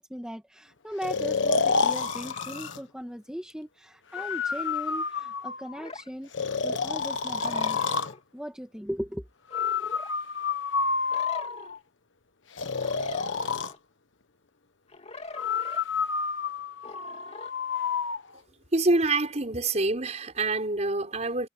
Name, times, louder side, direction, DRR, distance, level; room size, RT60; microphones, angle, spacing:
voice 1, 0.0-6.3 6.6-7.9 8.3-9.3, equal, 5° right, 1.8 m, -38 dB
Breathing, 1.0-2.8 4.1-5.8 6.3-8.1 9.5-11.8 12.6-13.7 15.3-18.2, left 5 dB, 90° left, 1.2 m, -29 dB
sound 1, 1.9-2.8 4.1-4.4 5.8-6.1 7.4-8.2 9.5-10.1 11.1-11.8 12.7-13.8 14.9-15.8 16.8-17.5, left 3 dB, 35° left, 2.5 m, -42 dB
voice 2, 18.7-21.5, right 2 dB, 40° right, 5.0 m, -26 dB
head